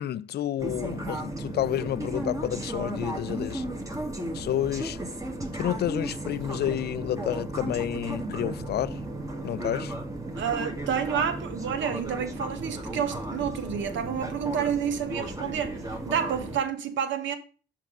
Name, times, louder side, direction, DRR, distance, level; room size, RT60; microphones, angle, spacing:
voice 1, 0.0-3.6 4.3-5.0 5.5-9.0 9.4-9.9, left 11 dB, 55° left, 0.4 m, -30 dB
sound 1, 0.6-16.6, right 1 dB, 15° right, 1.3 m, -35 dB
voice 2, 10.4-17.4, right 8 dB, 70° right, 1.2 m, -29 dB
5.9 x 5.8 x 4.9 m
cardioid pair, 90°, 20 cm